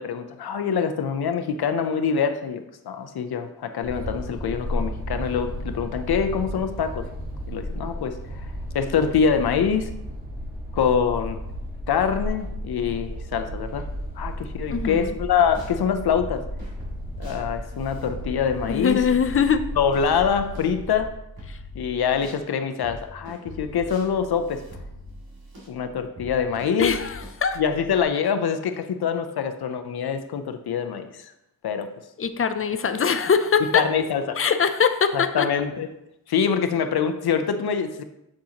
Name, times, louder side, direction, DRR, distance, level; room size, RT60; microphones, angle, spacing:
voice 1, 0.0-7.0 7.5-8.4 8.7-9.9 10.7-11.4 11.9-13.9 14.2-16.4 17.2-19.0 19.8-21.1 21.7-24.6 25.7-26.9 27.6-31.3 31.6-31.9 33.7-34.4 35.1-35.9 36.3-38.0, left 7 dB, 85° left, 8 dB, 0.6 m, -25 dB
sound 1, 3.8-21.1, equal, 25° right, 1.1 m, -34 dB
voice 2, 14.7-15.2 18.7-19.7 21.5-21.6 26.8-27.6 32.2-33.9 34.4-35.5, left 6 dB, 40° left, 10 dB, 0.4 m, -22 dB
sound 2, 14.7-15.8 16.2-22.4 22.8-28.0, equal, 70° right, 2.2 m, -42 dB
7.2 x 6.3 x 2.8 m, 0.84 s
wide cardioid pair, 175°, 37 cm